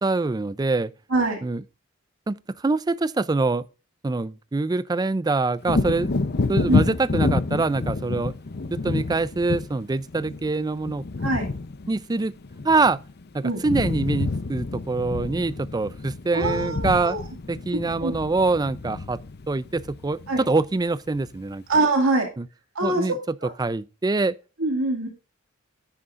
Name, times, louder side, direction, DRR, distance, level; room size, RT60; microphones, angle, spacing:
voice 1, 0.0-0.9 1.4-1.6 2.3-3.7 4.0-6.2 6.5-8.3 8.7-11.1 11.9-12.3 12.6-13.0 13.3-17.2 17.5-19.2 19.5-21.6 22.4-22.5 22.8-23.2 23.6-24.3, right 3 dB, 20° right, 0.4 m, -24 dB
Wind / Thunder, 5.6-13.2 13.5-20.7 21.1-21.3, left 3 dB, 50° left, 0.7 m, -28 dB
voice 2, 16.3-17.2 18.0-18.1 20.3-20.4 21.7-22.3 22.8-23.0 24.6-25.1, right 2 dB, 85° right, 2.2 m, -23 dB
10.0 x 9.6 x 2.5 m
head